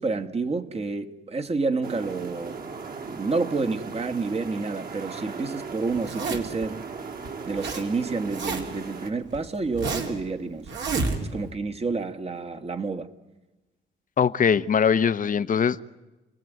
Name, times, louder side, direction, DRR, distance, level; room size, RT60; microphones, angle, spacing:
voice 1, 0.0-2.6 3.0-6.8 7.4-10.7 11.2-13.1, right 3 dB, 30° right, 1.7 m, -29 dB
sound 1, 1.8-9.1, right 5 dB, 45° right, 2.9 m, -38 dB
Zipper (clothing), 5.9-6.6 7.2-7.8 8.1-8.9 9.3-10.2 10.7-11.5, right 4 dB, 65° right, 3.5 m, -30 dB
voice 2, 14.2-15.8, left 7 dB, 45° left, 0.9 m, -21 dB
29.5 x 19.0 x 9.3 m
cardioid pair, 90°, 20 cm